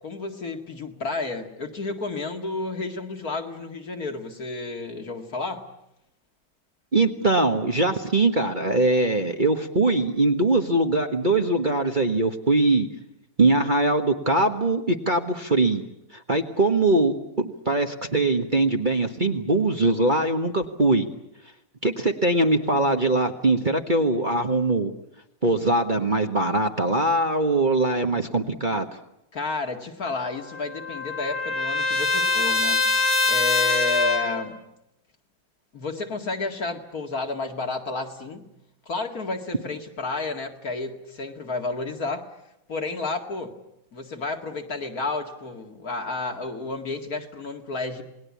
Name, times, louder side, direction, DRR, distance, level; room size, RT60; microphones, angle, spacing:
voice 1, 0.0-5.7 29.3-32.9 33.3-34.6 35.7-38.5 38.9-42.3 42.7-43.5 43.9-48.0, left 3 dB, 50° left, 4 dB, 2.5 m, -31 dB
voice 2, 6.9-12.9 13.4-15.8 16.1-21.1 21.8-24.9 25.4-28.9, right 2 dB, 30° right, 4 dB, 1.4 m, -22 dB
Trumpet, 30.1-34.4, left 3 dB, 75° left, 4.3 m, -24 dB
28.5 x 20.0 x 8.5 m, 0.86 s
omnidirectional pair, 2.0 m